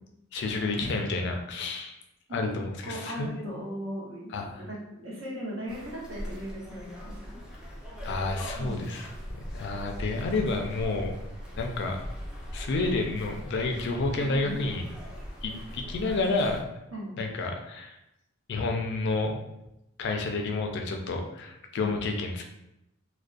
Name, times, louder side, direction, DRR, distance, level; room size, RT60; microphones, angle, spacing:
voice 1, 0.3-2.0 2.3-3.6 4.3-4.6 8.0-9.1 9.3-11.1 11.6-12.0 12.5-14.9 15.4-16.6 17.2-18.0 18.5-19.4 20.0-22.4, left 3 dB, 60° left, 3 dB, 0.4 m, -30 dB
voice 2, 2.8-7.4 8.6-8.9 14.2-14.6 16.9-17.2 21.8-21.9, equal, 70° right, -4 dB, 0.8 m, -38 dB
sound 1, 5.7-16.6, equal, 5° right, 0.4 m, -40 dB
2.5 x 2.1 x 2.3 m, 0.87 s
head